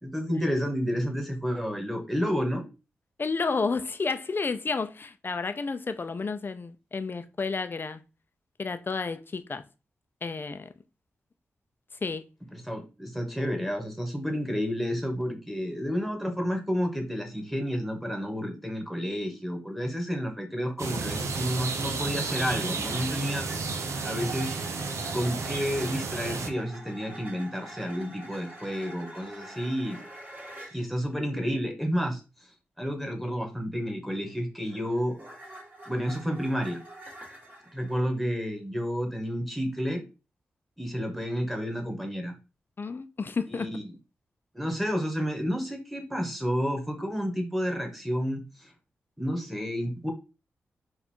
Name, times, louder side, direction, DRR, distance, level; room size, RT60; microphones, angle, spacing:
voice 1, 0.0-2.6 12.5-23.5 24.0-24.6 25.1-30.0 30.7-32.2 32.8-35.2 35.9-36.8 37.7-40.0 40.8-42.3 43.6-43.9 44.5-48.7 49.2-50.1, equal, ahead, 1.6 m, -30 dB
voice 2, 3.2-8.0 8.6-9.6 10.2-10.7 12.0-12.2 42.8-43.7, left 4 dB, 45° left, 0.6 m, -31 dB
sound 1, 20.8-26.5, right 4 dB, 75° right, 0.6 m, -32 dB
sound 2, 22.8-30.8 34.2-38.0, right 1 dB, 30° right, 2.1 m, -46 dB
4.3 x 2.6 x 4.5 m
cardioid pair, 50°, 5 cm